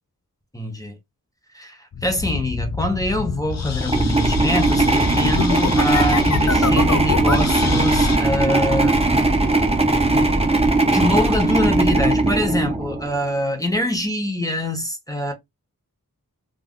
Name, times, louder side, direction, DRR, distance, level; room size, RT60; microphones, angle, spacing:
voice 1, 0.5-1.0 1.5-9.3 10.8-15.3, left 1 dB, 10° left, 0.9 m, -24 dB
sound 1, 1.9-8.2, left 5 dB, 45° left, 0.5 m, -25 dB
sound 2, 3.8-13.2, right 2 dB, 15° right, 0.6 m, -19 dB
3.2 x 2.5 x 2.3 m
wide cardioid pair, 40°, 37 cm